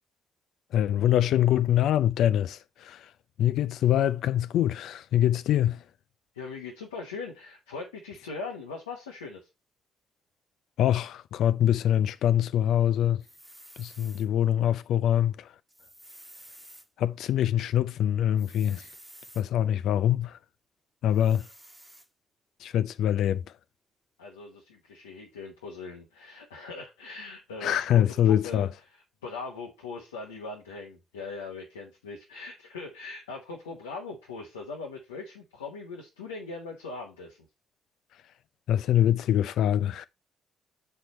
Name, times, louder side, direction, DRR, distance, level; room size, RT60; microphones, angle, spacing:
voice 1, 0.7-3.1 3.4-5.8 10.8-13.2 13.8-15.5 17.0-18.9 19.4-20.4 21.0-21.5 22.6-23.4 27.6-28.7 38.7-40.1, left 11 dB, 65° left, 0.4 m, -24 dB
voice 2, 6.3-9.5 24.2-37.4, left 3 dB, 90° left, 1.1 m, -40 dB
sound 1, 13.2-14.3 15.7-16.9 18.4-19.5 21.1-22.1, right 1 dB, 10° right, 1.3 m, -51 dB
6.6 x 4.6 x 4.2 m
hypercardioid pair, 45°, 0 cm